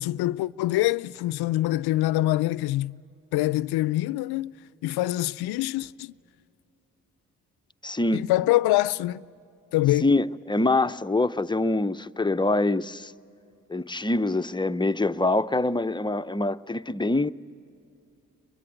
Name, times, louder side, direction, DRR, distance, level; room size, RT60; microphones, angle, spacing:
voice 1, 0.0-3.0 3.3-4.5 4.8-6.1 8.1-9.2 9.7-10.1, left 16 dB, 75° left, 0.5 m, -25 dB
voice 2, 7.8-8.2 10.0-13.1 13.7-17.3, left 2 dB, 10° left, 0.6 m, -25 dB
23.0 x 22.5 x 9.2 m
hypercardioid pair, 40°, 38 cm